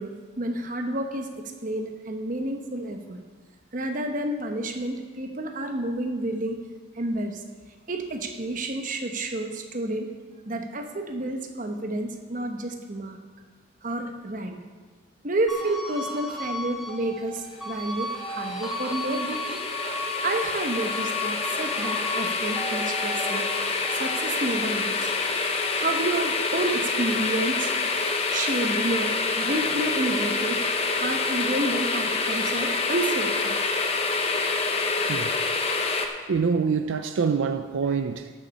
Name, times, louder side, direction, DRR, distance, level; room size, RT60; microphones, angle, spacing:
voice 1, 0.0-3.2 3.7-6.6 7.0-7.4 7.9-10.1 10.4-13.2 13.8-14.6 15.2-19.6 20.2-25.1 25.7-27.7 28.3-30.6 30.9-33.6, right 1 dB, 40° right, 1.0 m, -30 dB
sound 1, 15.5-28.1 28.5-30.2, left 1 dB, ahead, 1.3 m, -36 dB
sound 2, 18.0-36.1, left 4 dB, 30° left, 0.7 m, -27 dB
voice 2, 36.3-38.3, right 5 dB, 75° right, 0.4 m, -25 dB
13.5 x 6.9 x 5.4 m
head